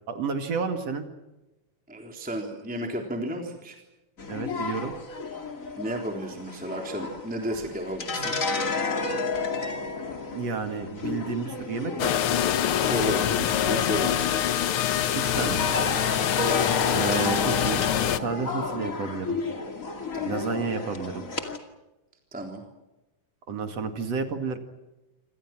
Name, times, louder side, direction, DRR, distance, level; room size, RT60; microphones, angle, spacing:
voice 1, 0.1-1.1 4.3-4.9 10.3-12.1 15.1-15.6 16.9-17.8 18.2-19.4 20.2-21.2 23.5-24.6, right 5 dB, 55° right, 7 dB, 3.1 m, -31 dB
voice 2, 1.9-3.8 5.8-8.3 12.7-14.6 16.4-16.7 20.1-20.4 22.3-22.6, right 1 dB, 5° right, 2 dB, 3.2 m, -33 dB
sound 1, 4.2-21.6, left 3 dB, 25° left, 2.3 m, -33 dB
sound 2, 12.0-18.2, left 10 dB, 75° left, 1.2 m, -24 dB
28.0 x 26.5 x 6.1 m, 1.0 s
omnidirectional pair, 3.8 m